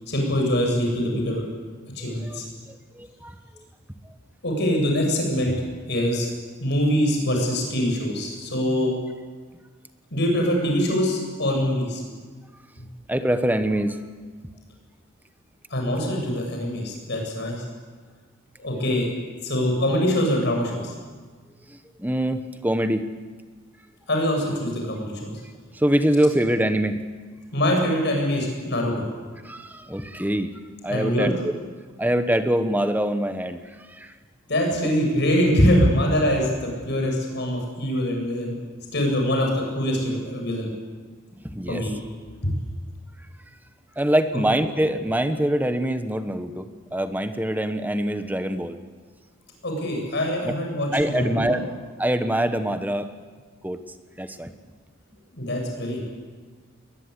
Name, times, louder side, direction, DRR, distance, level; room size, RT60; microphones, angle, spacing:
voice 1, 0.1-1.5 1.9-2.4 4.4-5.5 5.9-6.3 6.6-8.9 10.1-12.0 12.8-12.9 15.7-17.6 18.6-19.1 19.4-20.9 24.1-25.3 27.5-29.0 30.9-31.3 34.5-38.5 38.9-40.7 41.7-41.9 42.4-42.5 49.6-51.6 55.4-56.0, equal, 55° left, 1 dB, 7.9 m, -23 dB
voice 2, 2.0-2.4 2.7-3.4 8.7-8.9 13.1-14.0 14.4-14.5 21.7-23.1 25.7-27.0 29.4-30.5 30.8-31.5 32.0-33.6 33.9-34.1 41.4-41.8 44.0-48.8 50.4-50.5 50.9-51.6 52.0-53.1 53.6-53.8 54.2-54.5, right 1 dB, 10° right, 9 dB, 1.2 m, -24 dB
22.0 x 20.5 x 10.0 m, 1.5 s
head